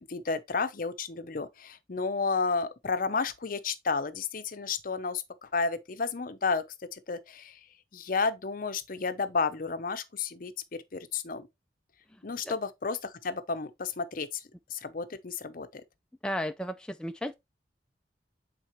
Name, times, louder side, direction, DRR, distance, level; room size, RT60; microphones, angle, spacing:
voice 1, 0.1-6.6 6.9-7.6 7.9-10.5 10.9-11.5 12.2-14.4 14.7-15.8, left 4 dB, 50° left, 0.7 m, -32 dB
voice 2, 16.2-17.3, equal, 5° left, 0.3 m, -34 dB
8.4 x 4.0 x 3.0 m
head